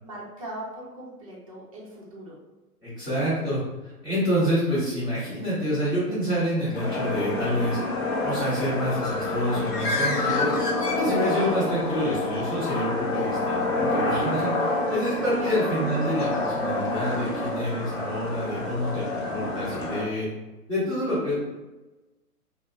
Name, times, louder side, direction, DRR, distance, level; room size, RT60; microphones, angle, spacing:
voice 1, 0.0-2.4 15.4-15.6 17.3-17.5, right 1 dB, 25° right, -5 dB, 0.5 m, -40 dB
voice 2, 2.8-3.6 4.0-7.8 8.2-10.5 10.8-20.3 20.7-21.3, equal, 15° left, -15 dB, 0.8 m, -27 dB
sound 1, 6.7-20.0, left 2 dB, 45° left, 0.5 m, -28 dB
Bird, 8.6-11.6, left 3 dB, 85° left, 0.8 m, -30 dB
2.5 x 2.0 x 2.6 m, 1.1 s
figure-of-eight pair, 125°, 46 cm